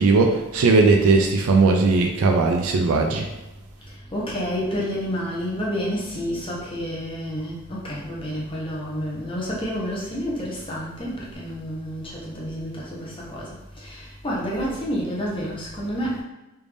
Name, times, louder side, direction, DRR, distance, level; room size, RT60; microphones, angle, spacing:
voice 1, 0.0-3.2, right 3 dB, 65° right, 3 dB, 0.4 m, -18 dB
voice 2, 3.8-16.2, equal, 25° left, -5 dB, 0.8 m, -29 dB
3.4 x 2.6 x 3.3 m, 1.0 s
head